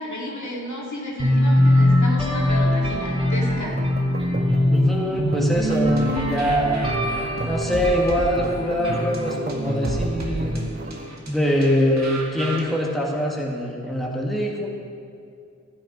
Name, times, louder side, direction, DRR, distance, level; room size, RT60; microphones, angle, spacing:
voice 1, 0.0-3.7, equal, 65° left, -4 dB, 2.3 m, -32 dB
sound 1, 1.2-11.0, left 1 dB, 15° right, 2.7 m, -22 dB
sound 2, 3.6-11.1, right 2 dB, 30° right, 0.6 m, -33 dB
voice 2, 4.7-6.8 7.4-10.6 11.3-14.7, equal, ahead, -2 dB, 1.7 m, -23 dB
sound 3, 5.7-12.6, right 2 dB, 60° right, 1.6 m, -35 dB
12.5 x 8.9 x 5.2 m, 2.4 s
wide cardioid pair, 65°, 31 cm